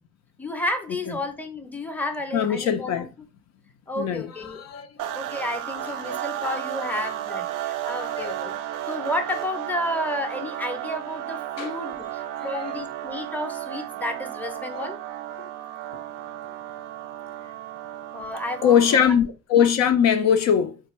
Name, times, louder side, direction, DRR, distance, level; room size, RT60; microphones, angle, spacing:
voice 1, 0.4-3.1 3.9-4.6 5.1-8.5 8.9-15.0 18.1-19.0, left 1 dB, 5° left, 0.6 m, -31 dB
voice 2, 2.3-3.1 4.0-5.2 5.8-6.2 8.0-8.5 11.6-11.7 12.4-12.7 14.7-14.8 18.6-20.8, left 8 dB, 60° left, 0.5 m, -22 dB
sound 1, 5.0-19.2, right 12 dB, 85° right, 0.5 m, -33 dB
3.4 x 2.4 x 3.0 m
cardioid pair, 90°, 30 cm